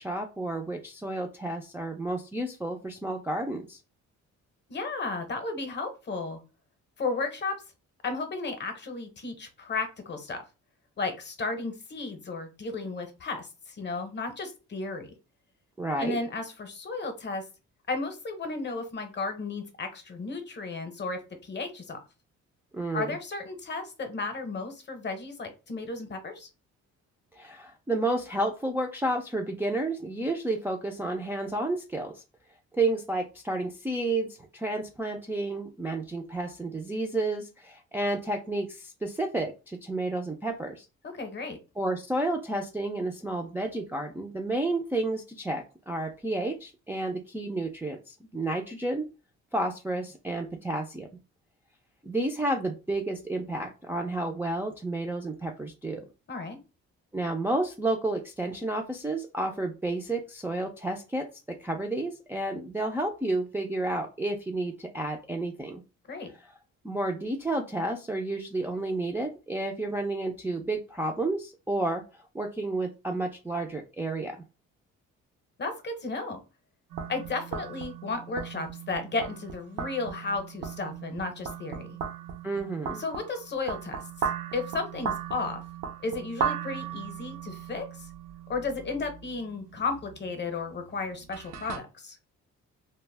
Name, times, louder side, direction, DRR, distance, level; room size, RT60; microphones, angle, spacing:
voice 1, 0.0-3.8 15.8-16.2 22.7-23.2 27.3-32.2 32.7-34.3 34.5-40.9 41.8-49.1 49.5-51.1 52.0-56.1 57.1-65.8 66.8-72.0 72.3-74.4 82.4-83.0, right 2 dB, 10° right, 1 dB, 0.3 m, -31 dB
voice 2, 4.7-6.4 7.0-7.5 8.0-10.4 11.0-15.1 16.0-17.4 17.9-22.0 22.9-26.5 41.1-41.6 56.3-56.6 66.1-66.3 75.6-76.4 77.1-82.0 83.0-85.6 86.0-88.1 88.5-92.2, left 3 dB, 35° left, 7 dB, 0.7 m, -34 dB
sound 1, 76.9-91.8, right 7 dB, 85° right, 0.6 m, -37 dB
2.1 x 2.1 x 3.2 m, 0.30 s
cardioid pair, 90°, 30 cm